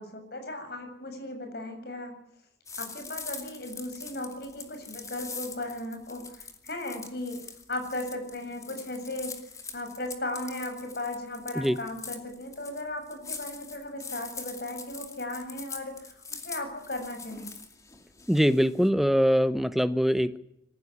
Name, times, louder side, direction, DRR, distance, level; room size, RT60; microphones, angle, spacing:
voice 1, 0.0-2.1 2.8-7.4 7.7-9.3 9.7-17.5, left 1 dB, 60° left, 6 dB, 7.5 m, -36 dB
sound 1, 2.7-18.9, left 5 dB, 20° left, 2.5 m, -43 dB
voice 2, 18.3-20.4, equal, ahead, 12 dB, 1.0 m, -23 dB
25.5 x 15.5 x 10.0 m, 0.77 s
head